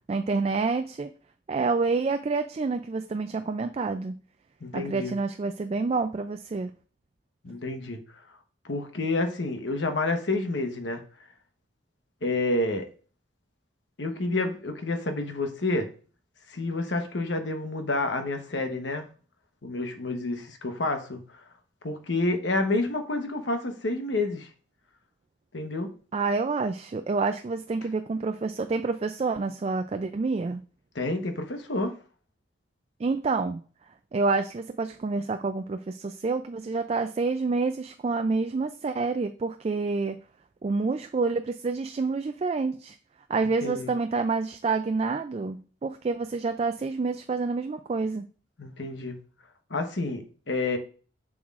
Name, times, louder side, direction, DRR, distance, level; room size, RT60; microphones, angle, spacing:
voice 1, 0.1-1.1 1.5-4.2 4.7-6.7 26.1-30.6 33.0-33.6 34.1-40.2 40.6-42.9 43.3-48.3, right 4 dB, 35° right, 0.3 m, -28 dB
voice 2, 4.6-5.1 7.4-8.0 8.6-11.0 12.2-12.9 14.0-15.9 16.5-19.1 19.6-21.4 21.8-24.5 25.5-25.9 30.9-31.9 43.6-43.9 48.6-49.2 49.7-50.8, left 2 dB, 70° left, 1.1 m, -29 dB
7.1 x 6.3 x 2.5 m
head